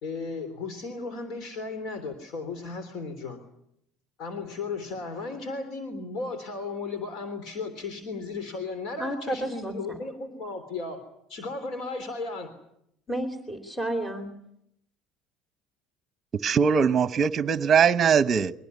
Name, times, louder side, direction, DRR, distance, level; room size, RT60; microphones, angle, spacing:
voice 1, 0.0-3.4 4.2-11.0 11.3-12.5, left 3 dB, 65° left, 3.5 m, -35 dB
voice 2, 9.0-10.0 13.1-14.3, right 1 dB, 5° left, 2.8 m, -31 dB
voice 3, 16.4-18.5, right 6 dB, 35° right, 1.0 m, -21 dB
23.5 x 18.0 x 9.6 m
cardioid pair, 125°, 0 cm